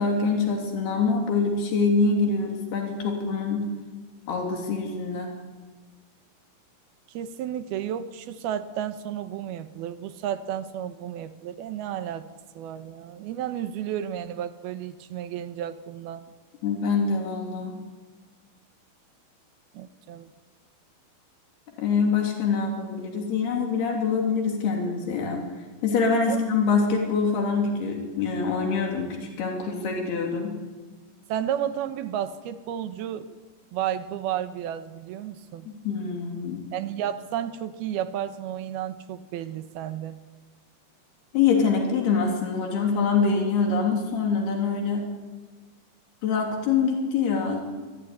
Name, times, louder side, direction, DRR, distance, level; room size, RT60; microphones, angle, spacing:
voice 1, 0.0-3.7 4.3-5.3 16.6-17.8 21.8-25.4 25.8-30.6 35.7-36.6 41.3-45.1 46.2-47.6, left 5 dB, 85° left, 1 dB, 5.2 m, -25 dB
voice 2, 7.1-12.3 12.6-16.2 19.7-20.3 26.3-26.4 31.3-33.4 33.7-35.7 36.7-40.2, right 10 dB, 85° right, 11 dB, 3.0 m, -32 dB
25.0 x 23.5 x 9.8 m, 1.4 s
omnidirectional pair, 4.4 m